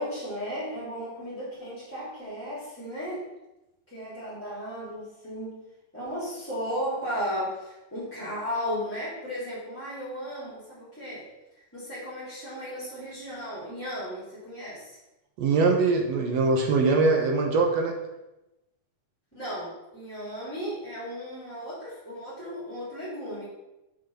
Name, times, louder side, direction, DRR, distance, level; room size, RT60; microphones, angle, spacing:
voice 1, 0.0-3.3 3.9-5.6 5.9-11.3 11.7-15.0 19.3-23.4, equal, 5° left, -10 dB, 2.8 m, -35 dB
voice 2, 15.4-18.0, right 3 dB, 65° right, 2 dB, 1.8 m, -22 dB
6.7 x 6.3 x 5.7 m, 0.95 s
omnidirectional pair, 4.0 m